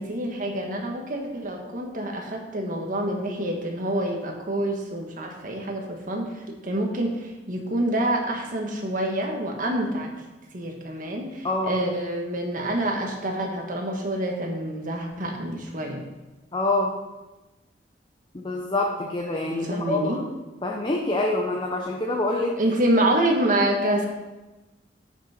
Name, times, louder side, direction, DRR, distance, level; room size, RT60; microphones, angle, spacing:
voice 1, 0.0-10.1 10.5-16.0 19.5-20.2 22.6-24.1, right 1 dB, 50° right, 2 dB, 1.4 m, -27 dB
voice 2, 16.5-16.9 18.3-20.2 20.6-22.6, left 2 dB, 25° left, 0 dB, 0.8 m, -26 dB
9.7 x 5.7 x 4.3 m, 1.1 s
head